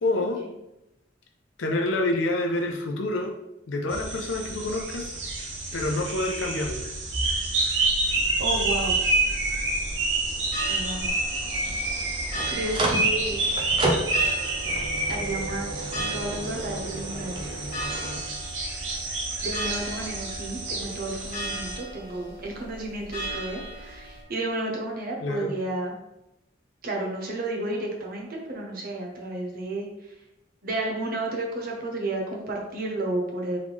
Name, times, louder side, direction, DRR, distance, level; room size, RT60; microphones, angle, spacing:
voice 1, 0.0-0.4 1.6-3.3 3.7-5.2 5.7-6.8 7.2-7.9 25.2-25.5, left 2 dB, 85° left, 1 dB, 0.5 m, -28 dB
sound 1, 3.9-21.8, right 2 dB, 75° right, 0.9 m, -29 dB
sound 2, 7.8-24.2, right 1 dB, 50° left, 1.1 m, -37 dB
voice 2, 8.4-9.0 10.7-11.1 12.5-13.4 14.2-14.3 15.1-17.5 19.4-26.0 26.8-30.1 30.6-33.6, right 2 dB, 50° right, -1 dB, 1.0 m, -32 dB
sound 3, 8.5-18.2, right 2 dB, 25° right, 0.5 m, -34 dB
3.7 x 3.2 x 3.5 m, 0.88 s
head